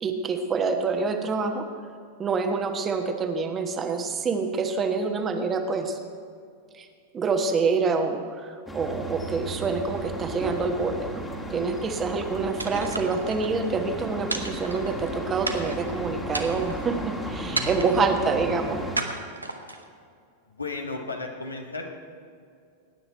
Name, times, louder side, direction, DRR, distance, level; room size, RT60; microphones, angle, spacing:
voice 1, 0.0-1.6 2.2-6.0 6.8-6.9 7.1-11.2 11.5-18.8, right 4 dB, 25° right, 6 dB, 1.3 m, -27 dB
sound 1, 8.7-19.0, equal, 10° left, 1.7 m, -35 dB
sound 2, 12.6-13.5 14.3-15.1 15.4-15.9 16.3-16.9 17.5-18.1 18.9-19.9, right 2 dB, 80° right, 0.9 m, -32 dB
voice 2, 20.5-21.9, left 3 dB, 80° left, 2 dB, 1.5 m, -34 dB
18.5 x 9.6 x 4.5 m, 2.3 s
figure-of-eight pair, 90°, 0 cm